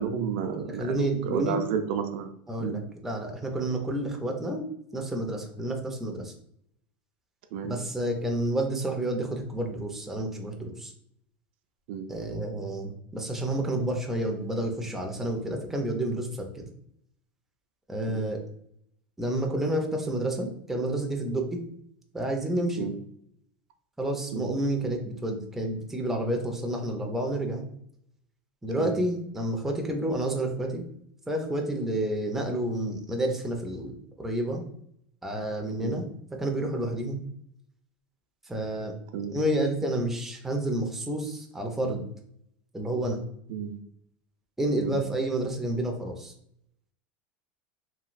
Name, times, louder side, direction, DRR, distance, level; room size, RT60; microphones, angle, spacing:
voice 1, 0.0-2.3 2.6-2.8 7.5-7.8 11.9-12.1 18.1-18.3 22.8-22.9 24.3-24.5 28.8-29.0 35.8-36.0 39.1-39.4 43.5-43.8 44.8-45.0, right 7 dB, 70° right, 6 dB, 0.4 m, -32 dB
voice 2, 0.8-1.6 2.5-4.6 4.9-6.3 7.6-10.9 12.1-16.7 17.9-18.4 19.2-21.6 22.1-22.9 24.0-27.6 28.6-30.8 31.3-34.6 35.2-36.0 36.3-37.2 38.5-38.9 39.3-42.0 42.7-43.2 44.6-46.3, right 1 dB, 5° right, 1 dB, 0.5 m, -29 dB
3.0 x 2.6 x 2.5 m, 0.69 s
supercardioid pair, 135°, 6 cm